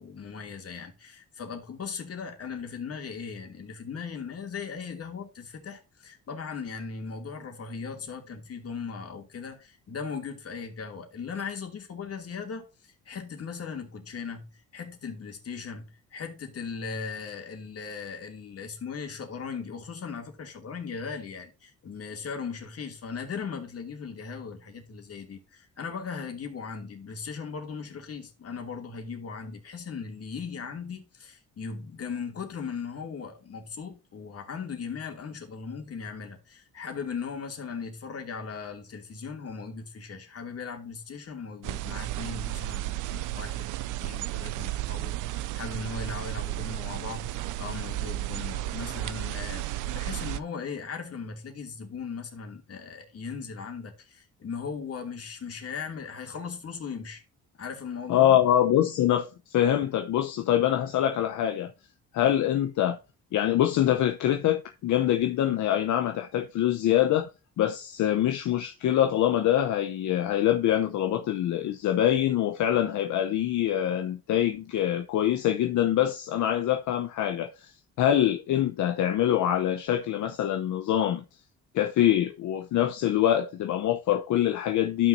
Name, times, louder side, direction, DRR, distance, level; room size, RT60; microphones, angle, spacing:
voice 1, 0.0-43.7 44.0-57.2 57.6-58.4, left 5 dB, 50° left, 2.6 m, -38 dB
sound 1, 41.6-50.4, right 16 dB, 80° right, 0.5 m, -33 dB
voice 2, 58.1-61.7 62.1-63.0 63.3-67.3 67.6-81.2 81.7-85.1, left 11 dB, 75° left, 0.9 m, -24 dB
12.5 x 6.2 x 2.7 m
cardioid pair, 90°, 30 cm